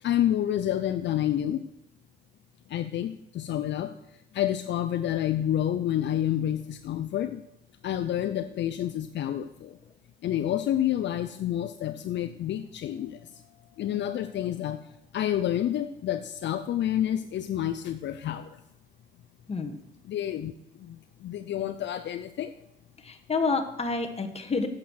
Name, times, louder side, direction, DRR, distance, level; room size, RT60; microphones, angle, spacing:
voice 1, 0.0-1.6 2.7-3.9 4.3-7.4 7.8-9.8 10.2-13.2 13.8-14.8 15.1-18.6 20.1-20.5 20.8-22.5, left 11 dB, 65° left, 10 dB, 0.6 m, -29 dB
voice 2, 23.0-24.7, left 4 dB, 30° left, 6 dB, 1.4 m, -29 dB
8.8 x 7.5 x 6.3 m, 0.84 s
cardioid pair, 90°, 20 cm